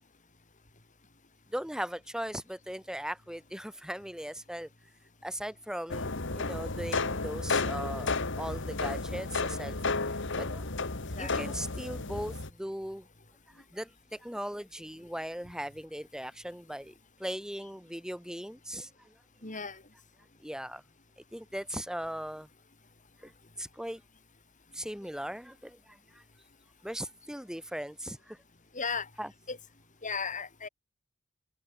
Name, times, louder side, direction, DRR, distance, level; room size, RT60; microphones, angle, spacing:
voice 1, 1.5-4.7 5.2-8.1 8.4-9.8 10.1-10.7 11.2-13.1 13.5-16.9 17.2-19.1 20.4-20.8 21.3-22.5 23.2-23.3 23.6-24.0 24.7-26.2 26.8-28.4 29.2-29.3, equal, 5° right, 4.6 m, -39 dB
sound 1, 5.9-12.5, left 3 dB, 60° left, 2.1 m, -32 dB
voice 2, 19.4-19.8 28.7-29.1 29.5-29.6 30.0-30.7, left 5 dB, 35° left, 6.0 m, -35 dB
head